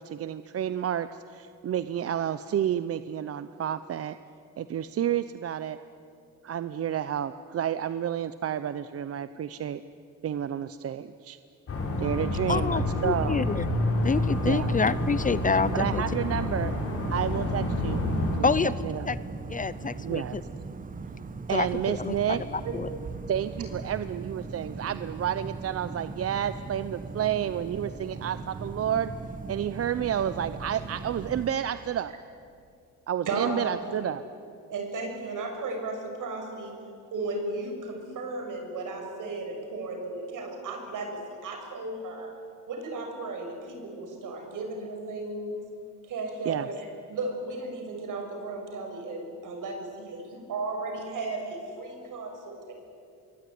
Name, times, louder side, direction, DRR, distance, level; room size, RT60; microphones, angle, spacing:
voice 1, 0.0-4.2 4.6-5.8 6.4-9.8 10.2-11.4 12.0-13.5 14.5-14.8 15.7-16.7 17.1-18.0 18.4-19.1 20.0-20.4 21.5-22.4 23.3-29.1 29.5-32.1 33.1-34.2 46.4-46.7, right 9 dB, 45° right, 13 dB, 0.7 m, -30 dB
sound 1, 11.7-18.4, left 1 dB, 45° left, 5.6 m, -28 dB
voice 2, 12.5-13.7 14.0-16.0 18.4-18.7 19.1-19.2 19.5-20.4 21.5-22.9, left 5 dB, 25° left, 16 dB, 0.6 m, -27 dB
sound 2, 14.0-31.5, right 4 dB, 25° right, 1.2 m, -39 dB
voice 3, 33.3-34.1 34.7-36.7 37.1-42.3 42.7-45.6 46.0-52.7, right 3 dB, 70° right, 3 dB, 6.5 m, -35 dB
27.5 x 23.0 x 9.4 m, 2.5 s
cardioid pair, 140°, 32 cm